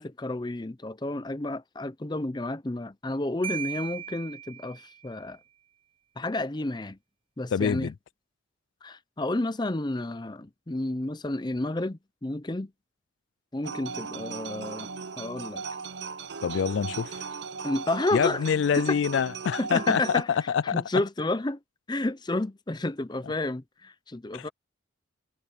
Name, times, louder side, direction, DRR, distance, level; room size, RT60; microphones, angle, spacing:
voice 1, 0.0-5.4 6.2-7.0 7.4-7.9 8.8-12.7 13.5-14.9 15.2-15.7 17.6-18.4 18.8-19.0 19.6-21.6 21.9-24.5, left 2 dB, 20° left, 0.6 m, -31 dB
Marimba xylophone, 3.4-5.2, right 10 dB, 25° right, 0.9 m, -38 dB
voice 2, 7.5-7.9 16.4-17.2 18.1-20.8 24.3-24.5, left 7 dB, 65° left, 0.3 m, -26 dB
sound 1, 13.6-20.2, right 5 dB, 55° right, 0.8 m, -37 dB
head